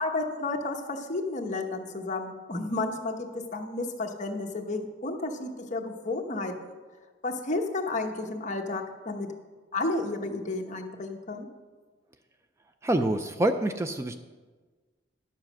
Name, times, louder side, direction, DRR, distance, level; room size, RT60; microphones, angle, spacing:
voice 1, 0.0-6.7 7.2-9.3 9.7-11.5, left 2 dB, 40° left, 3 dB, 1.0 m, -32 dB
voice 2, 12.8-14.2, right 1 dB, 15° right, 8 dB, 0.3 m, -26 dB
11.0 x 7.3 x 6.1 m, 1.4 s
head